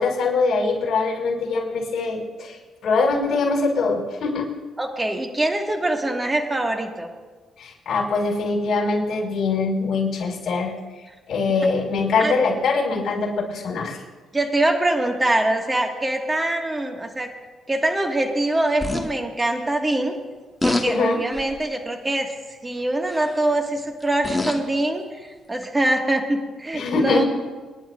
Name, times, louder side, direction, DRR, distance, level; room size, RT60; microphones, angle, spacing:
voice 1, 0.0-4.5 7.6-10.7 11.3-14.0 20.9-21.2 26.7-27.3, left 4 dB, 60° left, -1 dB, 5.4 m, -23 dB
voice 2, 4.8-7.1 12.2-12.3 14.3-17.3 17.7-20.1 20.6-27.2, right 1 dB, 20° right, 2 dB, 1.9 m, -24 dB
sound 1, 18.8-19.1 20.6-20.9 21.3-21.6 23.1-23.4 24.0-24.7 25.6-25.7, left 2 dB, 15° left, 1.3 m, -25 dB
29.5 x 11.0 x 2.6 m, 1.3 s
cardioid pair, 90°, 0 cm